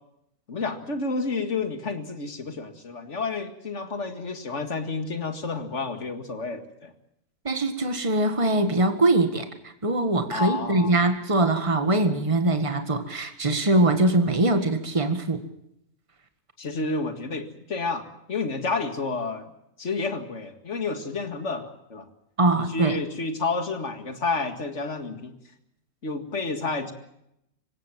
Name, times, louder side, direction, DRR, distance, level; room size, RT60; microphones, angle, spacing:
voice 1, 0.5-6.9 10.3-10.9 16.6-19.5 19.8-22.1 22.7-25.4 26.0-26.9, left 3 dB, 60° left, 8 dB, 2.4 m, -30 dB
voice 2, 7.5-9.5 9.8-15.4 22.4-23.0, right 2 dB, 25° right, 8 dB, 1.8 m, -22 dB
26.5 x 16.0 x 7.6 m, 0.80 s
omnidirectional pair, 1.4 m